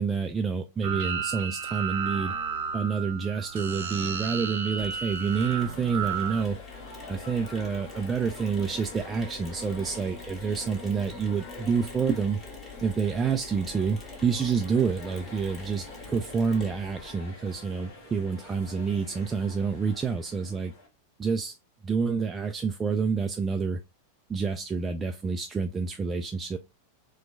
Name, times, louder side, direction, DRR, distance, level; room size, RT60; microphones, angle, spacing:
voice 1, 0.0-2.3 2.7-6.6 7.1-12.4 12.8-20.7 21.2-21.6 21.8-23.8 24.3-26.6, right 5 dB, 20° right, 0.3 m, -28 dB
sound 1, 0.8-6.4, right 6 dB, 60° right, 0.6 m, -33 dB
Mechanisms, 4.8-17.1, left 3 dB, 20° left, 1.4 m, -45 dB
sound 2, 5.3-20.9, left 1 dB, 50° left, 1.4 m, -47 dB
4.2 x 2.2 x 2.6 m
figure-of-eight pair, 90°, 0 cm